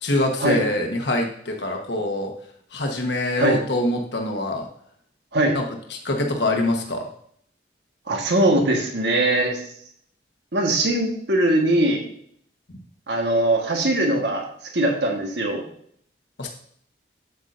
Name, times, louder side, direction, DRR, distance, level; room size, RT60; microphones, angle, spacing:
voice 1, 0.0-2.3 2.7-4.7 5.5-5.6 5.9-7.1 16.4-16.5, left 1 dB, 70° left, 2 dB, 1.2 m, -24 dB
voice 2, 8.1-9.6 10.5-12.1 13.1-14.4 14.7-15.7, right 1 dB, 70° right, 2 dB, 1.4 m, -21 dB
8.1 x 8.1 x 2.6 m, 0.64 s
head